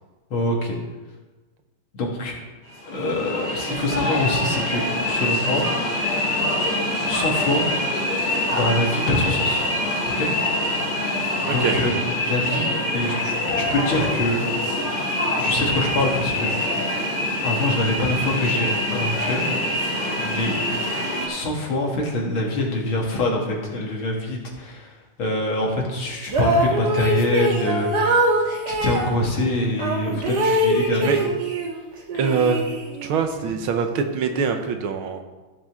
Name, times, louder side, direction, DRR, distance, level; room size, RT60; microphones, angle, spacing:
voice 1, 0.3-0.8 1.9-2.4 2.9-6.1 7.1-7.7 8.5-9.6 10.0-10.3 10.7-10.9 11.4-14.4 15.4-16.9 17.4-19.5 20.2-20.6 21.3-31.1 33.4-33.5, left 1 dB, 70° left, -1 dB, 2.7 m, -25 dB
sound 1, 2.7-21.3, left 1 dB, 50° left, 3.8 m, -24 dB
sound 2, 26.2-29.1 29.8-31.8 32.1-33.2, right 1 dB, 55° right, 1.8 m, -22 dB
voice 2, 32.2-32.6 33.0-35.2, right 5 dB, 75° right, 6 dB, 1.7 m, -23 dB
14.5 x 7.7 x 3.7 m, 1.2 s
omnidirectional pair, 2.3 m